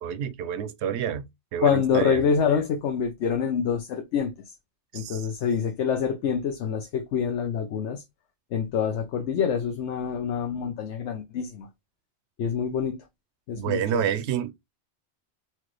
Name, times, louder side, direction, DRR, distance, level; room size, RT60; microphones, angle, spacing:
voice 1, 0.0-2.2 4.9-5.3 13.6-14.5, right 9 dB, 80° right, 0.9 m, -29 dB
voice 2, 1.6-4.3 4.9-8.0 8.5-11.7 12.4-13.0 13.5-14.0, left 7 dB, 85° left, 0.9 m, -26 dB
4.4 x 2.4 x 3.0 m
omnidirectional pair, 1.1 m